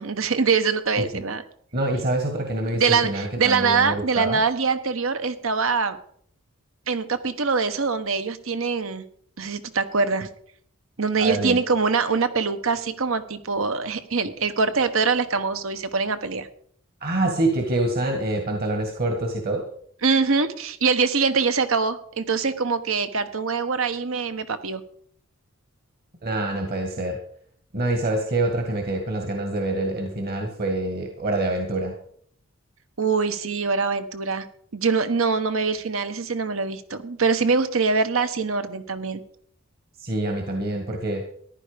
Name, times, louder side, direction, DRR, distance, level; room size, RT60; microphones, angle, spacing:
voice 1, 0.0-1.4 2.7-6.0 6.9-9.0 9.4-10.3 11.0-16.5 20.0-24.8 33.0-34.5 34.7-39.2, right 5 dB, 70° right, 11 dB, 1.1 m, -23 dB
voice 2, 1.7-4.4 11.2-11.6 17.0-19.6 26.2-27.2 27.7-31.9 40.0-41.2, right 2 dB, 45° right, 4 dB, 1.8 m, -26 dB
14.5 x 11.0 x 5.1 m, 0.62 s
head